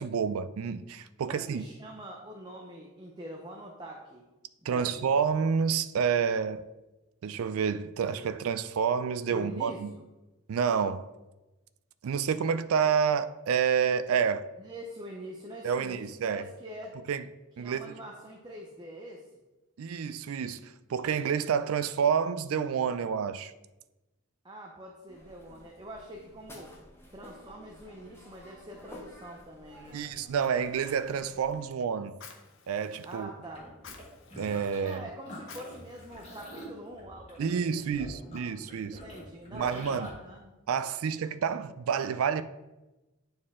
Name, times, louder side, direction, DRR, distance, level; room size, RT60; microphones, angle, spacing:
voice 1, 0.0-1.6 4.7-6.6 7.2-9.9 10.5-11.0 12.0-14.5 15.6-16.5 17.1-17.2 17.6-17.9 19.8-23.5 29.9-32.1 32.7-33.3 34.4-35.0 37.4-39.0 39.5-40.1 40.7-42.4, right 6 dB, 85° right, 0.4 m, -29 dB
voice 2, 1.3-4.2 4.6-4.9 9.3-10.1 14.6-17.0 17.6-19.3 24.4-26.7 27.1-30.1 33.0-33.7 34.8-37.9 38.8-40.5, right 1 dB, 20° right, 0.7 m, -44 dB
sound 1, 25.1-31.7, left 1 dB, 10° left, 0.8 m, -52 dB
Fire, 29.8-37.0, left 5 dB, 65° left, 0.8 m, -55 dB
sound 2, 33.4-35.0 35.2-40.1, equal, 30° left, 1.7 m, -46 dB
9.3 x 4.4 x 3.6 m
head